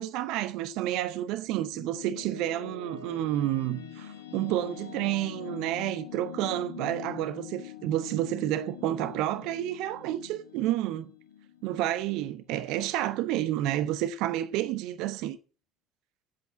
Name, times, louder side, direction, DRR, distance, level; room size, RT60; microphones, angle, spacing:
voice 1, 0.0-11.1 11.6-15.4, right 13 dB, 60° right, 0.7 m, -30 dB
sound 1, 1.1-12.4, left 8 dB, 75° left, 1.4 m, -44 dB
8.4 x 8.0 x 7.3 m
figure-of-eight pair, 55°, 0 cm